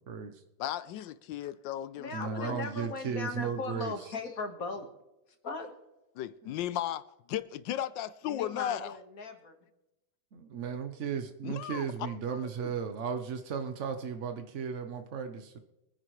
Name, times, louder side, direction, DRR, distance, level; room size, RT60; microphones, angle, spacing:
voice 1, 0.1-0.4 2.1-4.1 6.4-6.5 10.3-15.6, right 6 dB, 65° right, 0.7 m, -35 dB
voice 2, 0.6-2.6 6.2-9.0 11.4-12.7, left 12 dB, 75° left, 1.1 m, -36 dB
voice 3, 2.0-4.9 5.4-5.7 8.2-9.6, left 3 dB, 45° left, 1.8 m, -38 dB
24.5 x 10.0 x 3.2 m
omnidirectional pair, 2.3 m